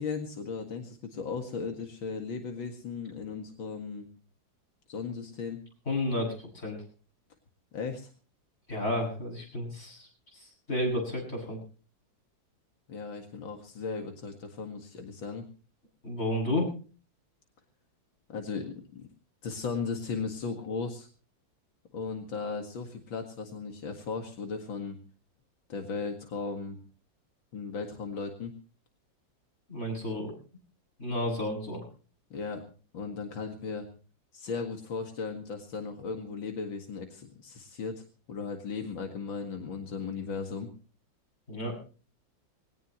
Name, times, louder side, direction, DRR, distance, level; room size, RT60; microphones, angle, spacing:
voice 1, 0.0-4.1 4.9-5.6 7.7-8.1 12.9-15.4 18.3-19.1 19.4-21.1 21.9-25.0 25.7-26.8 27.5-28.5 32.3-32.6 32.9-33.9 34.3-40.7, left 5 dB, 80° left, 4 dB, 2.7 m, -36 dB
voice 2, 5.9-6.8 8.7-11.6 16.0-16.7 29.7-30.3 31.0-31.8 41.5-41.7, left 1 dB, 30° left, 1 dB, 7.8 m, -32 dB
21.5 x 18.0 x 3.1 m, 0.38 s
omnidirectional pair, 2.1 m